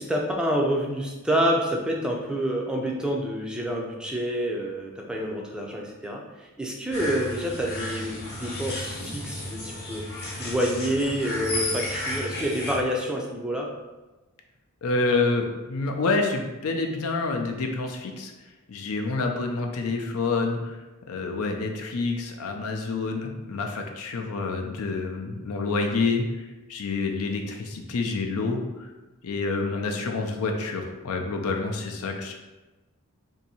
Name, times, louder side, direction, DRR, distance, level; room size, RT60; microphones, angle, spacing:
voice 1, 0.0-10.0 10.4-13.7, equal, 5° right, -1 dB, 0.4 m, -28 dB
sound 1, 6.9-12.8, left 1 dB, 45° left, 0.8 m, -33 dB
voice 2, 14.8-18.3 18.7-20.8 21.1-28.9 29.2-32.3, left 3 dB, 70° left, 3 dB, 0.5 m, -28 dB
2.7 x 2.6 x 4.1 m, 1.1 s
head